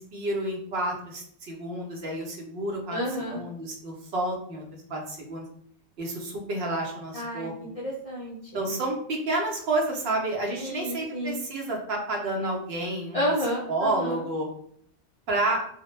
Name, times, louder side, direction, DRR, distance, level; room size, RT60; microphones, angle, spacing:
voice 1, 0.0-3.0 3.3-4.6 4.9-5.4 6.0-7.5 8.5-13.2 13.7-14.5 15.3-15.6, right 2 dB, 70° right, 0 dB, 0.8 m, -30 dB
voice 2, 2.9-3.5 7.1-7.5 7.8-8.7 10.6-11.4 13.1-14.2, equal, 55° left, -5 dB, 0.4 m, -31 dB
2.1 x 2.0 x 3.0 m, 0.64 s
omnidirectional pair, 1.1 m